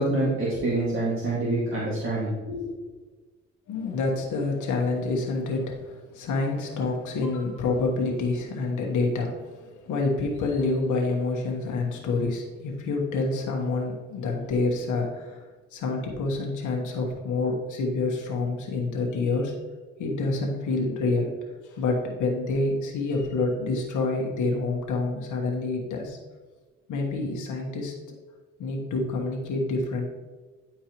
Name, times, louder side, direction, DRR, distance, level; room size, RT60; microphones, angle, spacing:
voice 1, 0.0-2.7, right 2 dB, 45° right, -6 dB, 1.9 m, -26 dB
voice 2, 3.7-15.5 15.7-19.5 20.0-21.3 21.6-26.2 26.9-27.9 28.6-30.0, left 3 dB, 85° left, 0 dB, 1.3 m, -27 dB
10.0 x 4.5 x 3.0 m, 1.3 s
cardioid pair, 90°, 30 cm